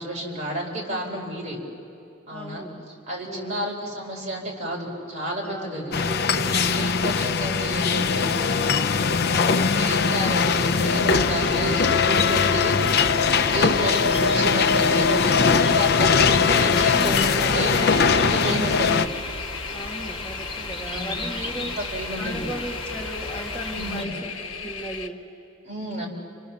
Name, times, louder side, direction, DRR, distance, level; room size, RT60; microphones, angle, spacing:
voice 1, 0.0-1.6 2.3-2.6 3.1-19.1 20.7-22.5 23.7-24.1 25.6-26.1, right 1 dB, 35° right, -2 dB, 4.5 m, -31 dB
voice 2, 2.3-2.9 3.3-3.6 5.4-6.8 9.2-10.0 12.4-12.8 19.7-21.8 22.2-25.3, right 1 dB, 5° left, -3 dB, 1.9 m, -36 dB
sound 1, 5.9-19.1, left 5 dB, 55° left, 0.6 m, -21 dB
sound 2, 11.0-24.0, left 2 dB, 25° left, 2.6 m, -35 dB
sound 3, 16.7-25.1, left 6 dB, 75° left, 1.3 m, -36 dB
30.0 x 26.5 x 7.1 m, 2.7 s
head